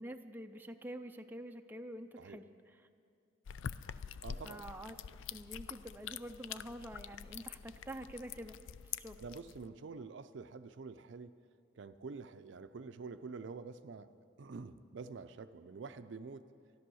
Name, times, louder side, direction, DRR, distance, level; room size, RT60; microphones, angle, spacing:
voice 1, 0.0-2.5 4.4-5.0 5.3-8.6 8.9-9.2, right 1 dB, 10° right, 6 dB, 0.4 m, -47 dB
sound 1, 3.5-9.7, left 8 dB, 80° left, 0.4 m, -46 dB
voice 2, 4.2-4.6 9.2-11.4 11.7-14.1 14.4-16.5, right 4 dB, 65° right, 11 dB, 0.5 m, -47 dB
13.0 x 12.5 x 6.2 m, 2.4 s
head